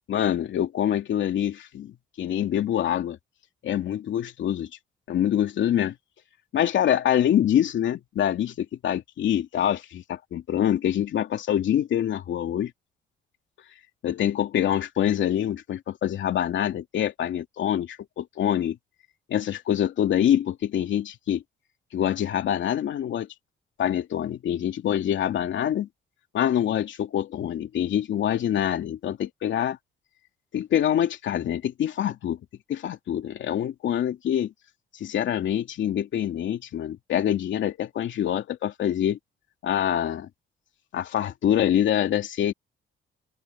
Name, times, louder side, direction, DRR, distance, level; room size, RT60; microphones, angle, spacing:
voice 1, 0.1-3.2 3.6-4.7 5.1-5.9 6.5-12.7 14.0-18.8 19.3-21.4 21.9-23.3 23.8-25.9 26.3-29.8 30.5-32.4 32.7-34.5 34.9-39.2 39.6-40.3 40.9-42.5, left 10 dB, 70° left, 2.7 m, -25 dB
open air
cardioid pair, 90°, 20 cm